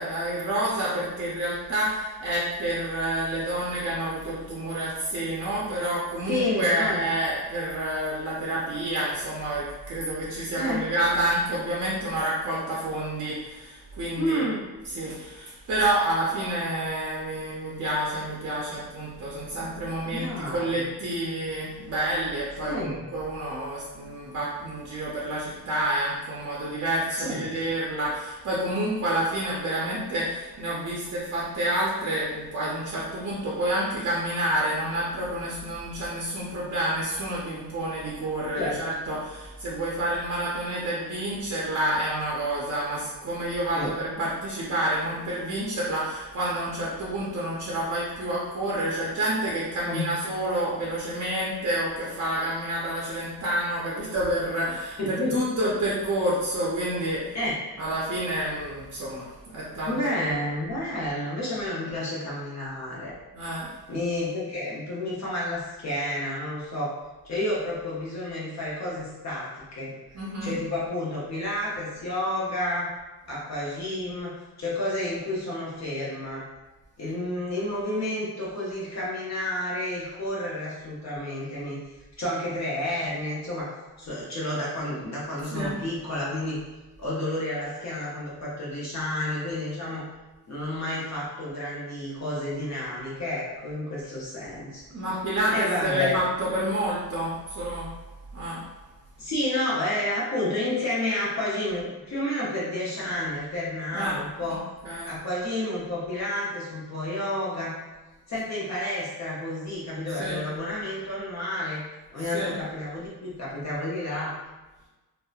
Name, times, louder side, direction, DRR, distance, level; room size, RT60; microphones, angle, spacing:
voice 1, 0.0-14.5 14.9-57.4 57.8-59.9 60.2-60.4 63.3-63.8 70.1-70.5 85.5-85.8 94.9-98.0 98.3-98.7 103.9-104.2 104.5-104.6 104.8-105.1 110.2-110.4 112.3-112.5, right 1 dB, 45° right, -5 dB, 0.5 m, -29 dB
voice 2, 6.3-7.0 10.6-10.8 14.2-14.6 20.1-20.8 22.6-23.1 27.2-27.5 38.6-38.8 43.7-43.9 49.9-50.1 55.0-55.3 57.3-57.5 59.9-63.2 63.9-67.0 67.2-72.9 73.3-76.4 77.0-81.8 82.2-86.6 87.0-90.1 90.5-94.8 95.5-96.2 99.2-104.7 105.0-107.7 108.3-111.8 112.1-114.4, left 1 dB, 45° left, -7 dB, 0.6 m, -30 dB
2.7 x 2.0 x 2.3 m, 1.2 s
wide cardioid pair, 130°, 39 cm